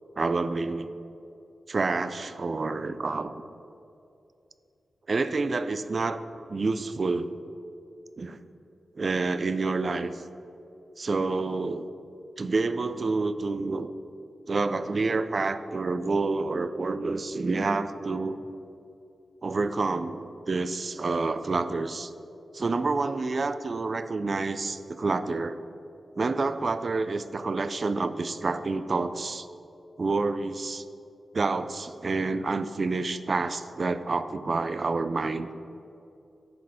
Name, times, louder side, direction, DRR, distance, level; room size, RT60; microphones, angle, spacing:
voice 1, 0.2-0.9 1.7-3.3 5.1-6.2 6.5-7.3 8.2-8.4 9.0-10.2 11.0-11.9 12.4-13.9 14.5-18.4 19.4-22.1 22.5-25.6 26.2-29.5 30.0-30.8 31.3-35.5, right 3 dB, 45° right, 12 dB, 0.3 m, -28 dB
11.0 x 4.1 x 4.9 m, 2.6 s
wide cardioid pair, 110°, 0 cm